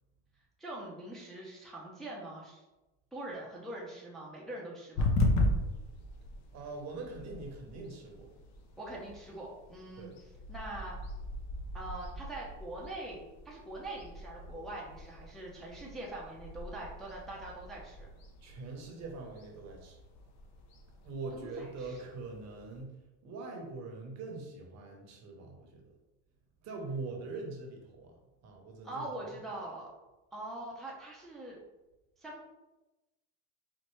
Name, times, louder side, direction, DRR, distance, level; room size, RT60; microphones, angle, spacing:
voice 1, 0.6-2.6 3.1-5.1 8.8-10.1 10.5-11.0 11.7-18.1 21.3-21.9 28.8-29.9 30.3-31.6 32.2-32.4, right 1 dB, ahead, -5 dB, 0.6 m, -43 dB
sound 1, 5.0-22.8, left 2 dB, 50° left, 0.7 m, -38 dB
voice 2, 6.5-8.3 10.0-10.2 18.4-20.0 21.0-23.0 23.2-25.9 26.6-28.1 28.4-29.4, right 3 dB, 45° right, 1 dB, 1.0 m, -43 dB
4.4 x 2.1 x 3.1 m, 1.0 s
supercardioid pair, 110°, 36 cm